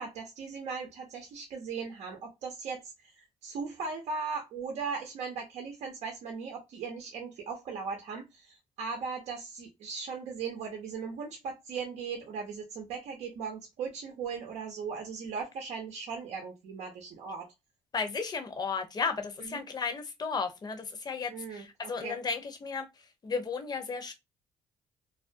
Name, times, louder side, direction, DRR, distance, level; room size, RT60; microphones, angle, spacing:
voice 1, 0.0-17.5 19.5-19.6 21.3-21.6 22.0-22.1, right 5 dB, 75° right, 0.6 m, -38 dB
voice 2, 17.9-24.1, left 5 dB, 35° left, 0.7 m, -34 dB
2.3 x 2.2 x 2.5 m
supercardioid pair, 70°, 12 cm